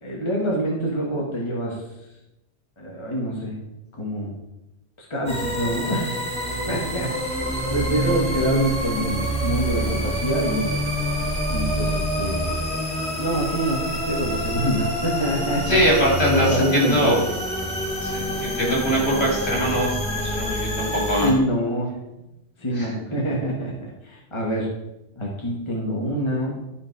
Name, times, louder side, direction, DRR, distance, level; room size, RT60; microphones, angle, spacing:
voice 1, 0.0-1.8 2.8-3.6 3.9-4.3 5.1-6.2 6.7-7.4 7.7-10.7 11.5-12.5 13.2-15.8 16.3-17.2 21.2-21.9 22.6-24.7 25.2-26.5, equal, 25° left, -3 dB, 1.7 m, -26 dB
sound 1, 5.3-21.3, equal, 5° left, 2.1 m, -26 dB
voice 2, 15.7-17.2 18.0-21.3 22.8-22.9, equal, 60° left, -3 dB, 3.5 m, -22 dB
12.5 x 5.3 x 4.8 m, 0.92 s
omnidirectional pair, 1.2 m